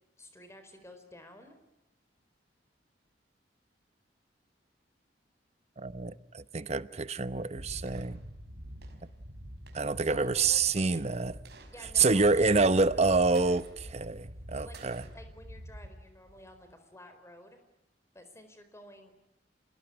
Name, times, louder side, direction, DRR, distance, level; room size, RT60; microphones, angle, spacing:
voice 1, 0.2-1.6 10.0-11.0 11.7-13.5 14.5-14.8 15.1-17.6 18.1-19.1, left 1 dB, 15° left, 4.4 m, -52 dB
voice 2, 5.8-8.2 9.7-11.3 12.0-15.0, right 3 dB, 35° right, 0.9 m, -27 dB
sound 1, 7.6-16.7, right 1 dB, 60° right, 5.2 m, -46 dB
28.0 x 20.0 x 9.9 m
head